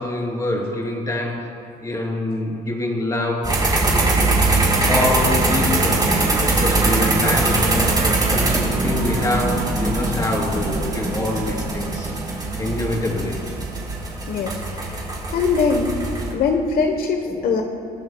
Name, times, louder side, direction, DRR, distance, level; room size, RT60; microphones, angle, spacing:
voice 1, 0.0-1.5 1.8-3.5 3.9-4.4 4.9-6.1 6.4-12.1 12.6-13.4 17.2-17.5, left 1 dB, 20° left, -1 dB, 3.5 m, -25 dB
sound 1, 3.4-16.3, right 2 dB, 25° right, 4.0 m, -21 dB
voice 2, 14.3-15.0 15.3-16.0 16.3-17.6, left 5 dB, 60° left, 4 dB, 1.1 m, -21 dB
29.0 x 13.0 x 2.3 m, 2.5 s
cardioid pair, 110°, 17 cm